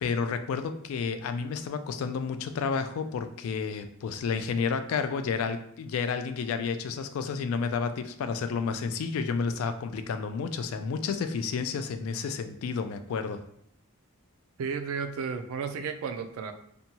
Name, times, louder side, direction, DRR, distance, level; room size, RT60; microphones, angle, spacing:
voice 1, 0.0-13.4, left 5 dB, 80° left, 9 dB, 0.3 m, -31 dB
voice 2, 14.6-16.5, right 6 dB, 80° right, 8 dB, 0.3 m, -33 dB
2.7 x 2.2 x 2.8 m, 0.70 s
head